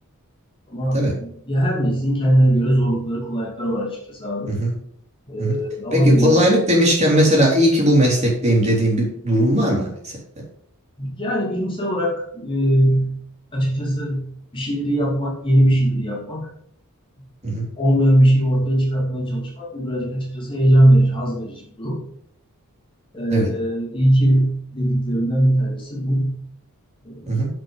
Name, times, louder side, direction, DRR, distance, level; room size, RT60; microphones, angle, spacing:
voice 1, 0.7-4.6 5.3-6.4 11.0-13.2 13.5-16.5 17.8-22.0 23.1-26.3 27.0-27.4, right 1 dB, 25° left, -4 dB, 2.6 m, -20 dB
voice 2, 5.9-10.2 17.4-17.7 23.3-23.5 27.3-27.5, equal, 30° right, -3 dB, 3.6 m, -18 dB
7.6 x 6.8 x 5.4 m, 0.67 s
head